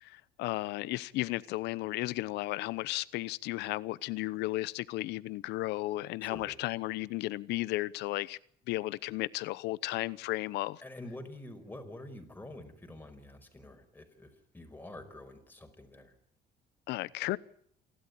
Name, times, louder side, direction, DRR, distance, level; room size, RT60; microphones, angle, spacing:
voice 1, 0.0-8.4 8.7-10.8 16.9-17.4, left 18 dB, 90° left, 0.8 m, -34 dB
voice 2, 6.2-6.6 10.8-16.1, left 1 dB, 10° left, 5.1 m, -47 dB
28.5 x 12.5 x 9.8 m
cardioid pair, 110°, 17 cm